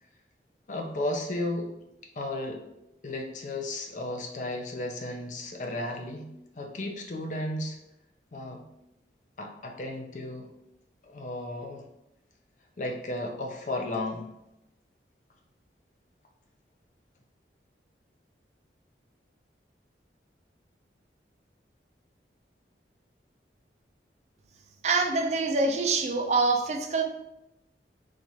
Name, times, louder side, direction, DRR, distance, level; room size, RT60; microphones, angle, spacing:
voice 1, 0.7-1.7 2.2-2.6 3.0-7.8 8.3-8.6 9.4-10.5 11.0-11.8 12.8-14.2, left 1 dB, 45° left, 2 dB, 0.5 m, -34 dB
voice 2, 24.8-27.0, right 3 dB, 40° right, 4 dB, 0.4 m, -25 dB
4.1 x 2.4 x 3.0 m, 0.87 s
head